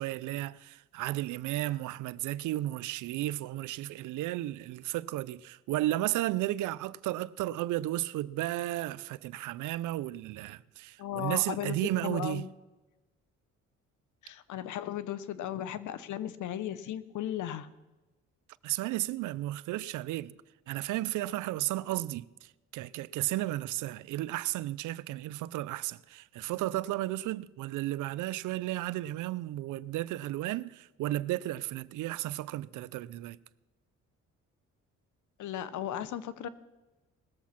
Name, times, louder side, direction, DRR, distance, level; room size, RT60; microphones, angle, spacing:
voice 1, 0.0-12.5 18.6-20.3 20.7-33.4, right 15 dB, 85° right, 0.5 m, -33 dB
voice 2, 11.0-11.7 12.0-12.5 14.2-17.7 35.4-36.5, left 11 dB, 75° left, 0.9 m, -36 dB
19.5 x 7.2 x 5.8 m
cardioid pair, 90°, 30 cm